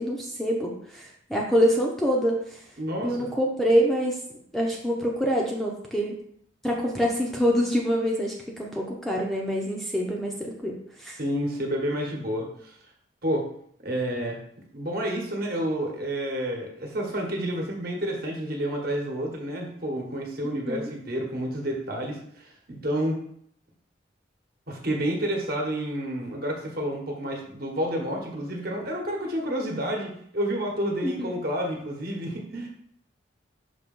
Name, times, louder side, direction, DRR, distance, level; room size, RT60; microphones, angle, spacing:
voice 1, 0.0-2.6 3.0-4.2 4.5-6.2 6.6-11.2 20.5-20.9 31.0-31.3, equal, ahead, -2 dB, 0.7 m, -26 dB
voice 2, 2.8-3.3 11.2-12.7 13.2-13.4 13.8-14.4 14.7-23.2 24.7-32.7, equal, 50° right, 0 dB, 1.3 m, -30 dB
6.0 x 2.9 x 5.3 m, 0.66 s
head